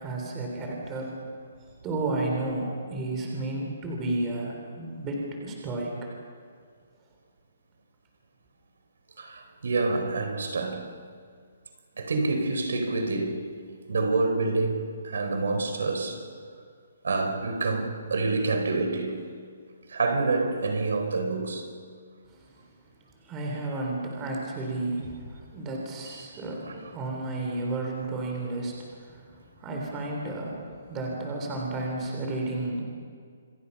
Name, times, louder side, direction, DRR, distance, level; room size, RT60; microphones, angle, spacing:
voice 1, 0.0-1.1 1.8-5.9 22.3-22.4 23.2-32.8, right 2 dB, 15° right, 3.5 m, -32 dB
voice 2, 9.2-10.9 12.0-13.6 13.9-16.3 17.0-19.3 19.9-21.8, right 3 dB, 70° right, 4.4 m, -27 dB
28.0 x 23.5 x 5.6 m
hypercardioid pair, 175°, 0 cm